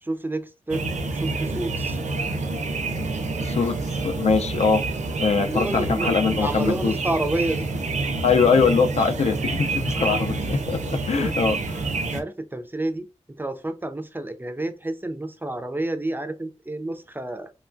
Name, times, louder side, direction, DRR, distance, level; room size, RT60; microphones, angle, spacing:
voice 1, 0.0-2.0 5.4-7.7 10.0-10.2 11.2-11.3 12.1-17.5, right 2 dB, 15° right, 0.3 m, -29 dB
sound 1, 0.7-12.2, right 3 dB, 80° right, 0.4 m, -28 dB
voice 2, 3.4-3.8 4.0-4.8 5.2-6.9 8.2-11.9, left 5 dB, 65° left, 0.4 m, -22 dB
3.0 x 2.2 x 2.5 m
wide cardioid pair, 90°, 12 cm